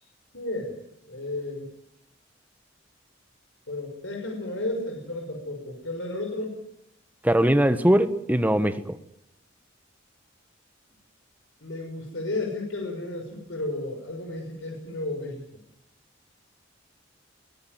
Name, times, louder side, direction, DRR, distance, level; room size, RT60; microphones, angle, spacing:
voice 1, 0.3-0.8 1.0-1.7 3.7-6.6 11.6-15.6, left 2 dB, 75° left, 2 dB, 5.9 m, -33 dB
voice 2, 7.2-8.8, right 1 dB, 10° right, 11 dB, 1.2 m, -20 dB
21.5 x 17.5 x 9.4 m, 0.76 s
head